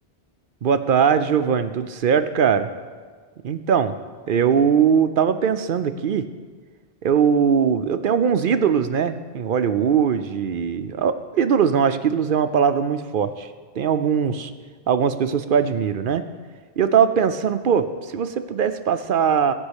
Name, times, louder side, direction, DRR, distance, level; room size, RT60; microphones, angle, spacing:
voice 1, 0.6-2.7 3.4-4.0 4.3-6.3 7.0-13.5 13.8-14.5 14.9-16.2 16.8-19.5, right 7 dB, 60° right, 10 dB, 0.7 m, -20 dB
15.0 x 5.4 x 8.2 m, 1.5 s
omnidirectional pair, 1.0 m